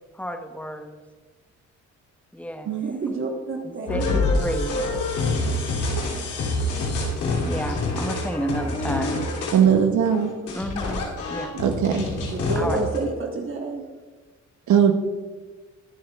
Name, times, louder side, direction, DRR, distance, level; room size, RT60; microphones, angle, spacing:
voice 1, 0.1-1.0 2.3-2.7 3.6-4.9 7.4-9.2 10.5-11.5 12.5-12.8, equal, 5° left, 5 dB, 1.1 m, -31 dB
voice 2, 2.8-4.2 12.3-13.8, right 3 dB, 45° right, 1 dB, 1.3 m, -29 dB
sound 1, 3.9-13.0, left 2 dB, 85° left, 3.0 m, -26 dB
voice 3, 9.5-10.3 11.6-12.1 14.7-14.9, right 8 dB, 70° right, 5 dB, 1.0 m, -19 dB
22.0 x 7.4 x 2.4 m, 1.3 s
cardioid pair, 90°, 30 cm